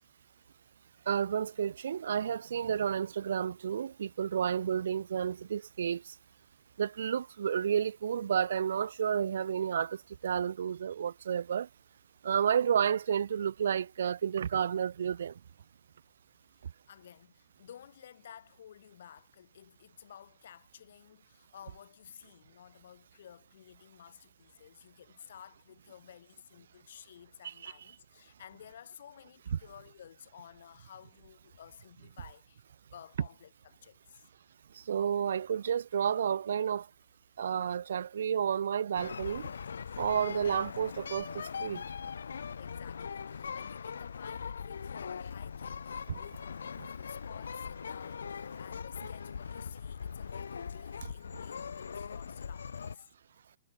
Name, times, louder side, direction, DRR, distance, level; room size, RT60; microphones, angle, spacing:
voice 1, 1.1-6.1 6.8-11.7 12.2-15.3 27.4-27.7 34.9-36.9 37.4-39.5 40.0-41.8 46.1-46.2, right 8 dB, 75° right, 0.4 m, -31 dB
voice 2, 16.5-32.6 32.9-34.3 42.6-53.1, left 9 dB, 65° left, 4.2 m, -54 dB
sound 1, 38.9-53.0, left 6 dB, 85° left, 0.9 m, -41 dB
hypercardioid pair, 140°, 0 cm